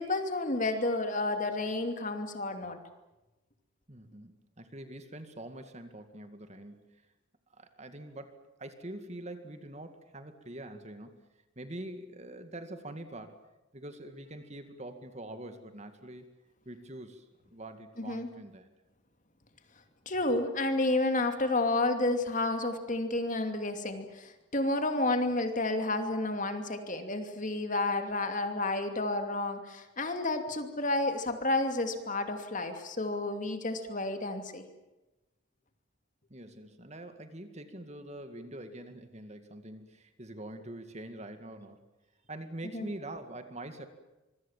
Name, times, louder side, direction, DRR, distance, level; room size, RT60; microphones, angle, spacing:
voice 1, 0.0-2.8 18.0-18.3 20.1-34.6 42.7-42.9, left 2 dB, 40° left, 6 dB, 2.7 m, -31 dB
voice 2, 3.9-7.0 7.5-11.2 11.6-13.4 13.7-16.3 16.7-18.7 36.3-41.8 42.3-43.9, right 1 dB, 35° right, 8 dB, 2.1 m, -44 dB
25.5 x 23.5 x 7.4 m, 1.0 s
head